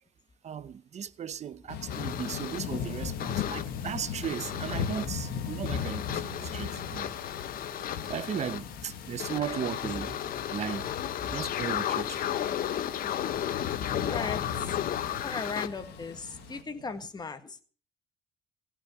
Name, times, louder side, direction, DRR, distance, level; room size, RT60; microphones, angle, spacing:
voice 1, 0.4-7.1 8.1-10.2 10.5-10.9 11.3-12.2, right 8 dB, 40° right, 0.8 m, -36 dB
Thunder / Rain, 1.7-16.6, left 8 dB, 75° left, 1.7 m, -38 dB
sound 1, 1.9-15.7, left 10 dB, 60° left, 0.9 m, -34 dB
sound 2, 3.1-17.1, right 8 dB, 70° right, 1.8 m, -52 dB
voice 2, 9.3-9.9 11.3-11.4 13.9-14.8 15.1-17.6, left 4 dB, 25° left, 1.7 m, -38 dB
16.5 x 6.1 x 8.9 m
cardioid pair, 110°, 17 cm